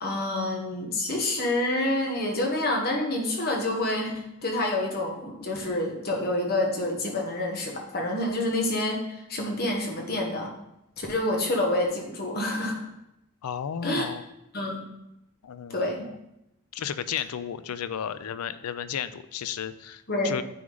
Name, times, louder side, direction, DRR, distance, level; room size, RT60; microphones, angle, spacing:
voice 1, 0.0-10.5 11.0-12.8 13.8-14.1 14.5-14.9 15.7-16.1 20.1-20.4, left 1 dB, 45° left, 1 dB, 1.2 m, -28 dB
voice 2, 13.4-14.2 15.4-16.0 16.7-20.4, left 8 dB, 85° left, 14 dB, 0.4 m, -33 dB
9.3 x 3.7 x 3.8 m, 0.86 s
head